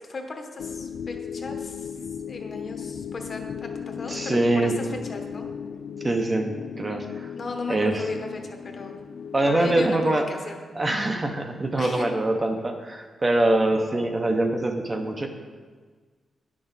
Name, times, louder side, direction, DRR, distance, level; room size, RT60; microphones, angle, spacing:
voice 1, 0.0-2.0 2.3-5.5 7.4-9.0 9.5-10.6 11.8-12.1, left 3 dB, 40° left, 4 dB, 0.8 m, -36 dB
sound 1, 0.6-9.9, left 7 dB, 85° left, 0.3 m, -36 dB
voice 2, 4.1-4.7 6.0-7.3 7.7-8.1 9.3-10.2 10.7-15.3, right 2 dB, 20° right, 4 dB, 0.6 m, -24 dB
9.6 x 6.1 x 3.9 m, 1.5 s
wide cardioid pair, 175°, 0 cm